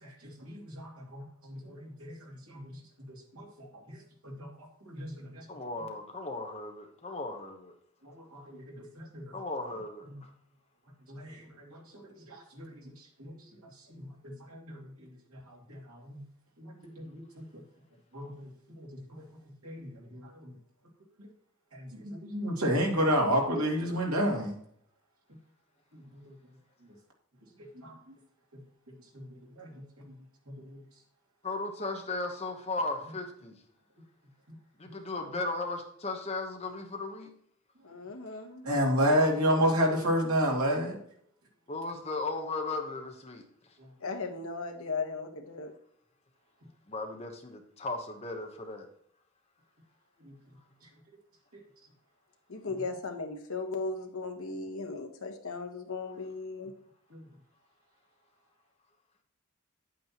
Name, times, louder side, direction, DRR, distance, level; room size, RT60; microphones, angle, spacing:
voice 1, 0.0-2.7 3.1-4.5 4.8-5.4 8.0-9.2 10.1-10.2 11.1-12.9 13.2-13.4 13.9-15.1 15.5-16.2 16.6-17.4 18.1-18.5 18.8-19.2 19.6-20.5 21.7-24.5 25.9-26.0 27.8-27.9 29.1-29.2 29.5-29.7 30.0-30.1 30.5-30.8 34.9-35.0 38.6-41.0 50.2-50.3 57.1-57.2, equal, 85° right, -1 dB, 2.5 m, -31 dB
voice 2, 5.5-7.7 9.3-10.3 31.4-33.5 34.8-37.3 41.7-43.4 46.9-48.9, left 2 dB, 30° left, 4 dB, 1.0 m, -36 dB
voice 3, 37.8-38.7 44.0-45.7 52.5-56.7, left 3 dB, 70° left, 3 dB, 1.3 m, -37 dB
9.1 x 8.5 x 3.0 m, 0.66 s
head